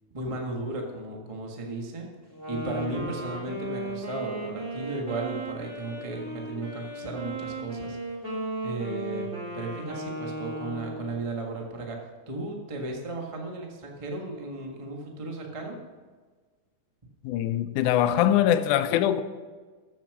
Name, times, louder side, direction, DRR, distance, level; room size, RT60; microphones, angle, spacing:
voice 1, 0.1-2.1 2.5-8.0 8.3-9.3 9.5-15.8, right 2 dB, 60° right, 0.3 m, -35 dB
Wind instrument woodwind instrument, 2.3-11.2, right 1 dB, 25° right, 1.4 m, -36 dB
voice 2, 17.2-19.2, left 11 dB, 80° left, 2.0 m, -22 dB
13.5 x 7.4 x 6.0 m
omnidirectional pair, 3.7 m